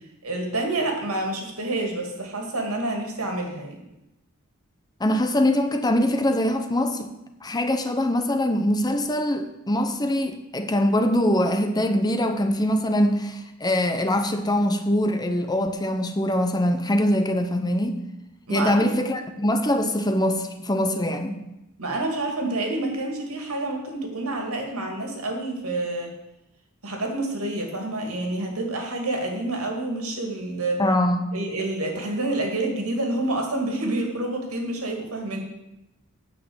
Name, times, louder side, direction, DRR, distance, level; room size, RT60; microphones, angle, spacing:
voice 1, 0.2-3.8 18.5-18.9 21.8-26.2 26.8-30.8 31.3-35.4, right 2 dB, 75° right, 2.2 m, -28 dB
voice 2, 5.0-7.1 7.4-18.0 18.5-21.4 30.8-31.3, left 1 dB, 20° left, 0.8 m, -23 dB
9.1 x 6.0 x 7.9 m
head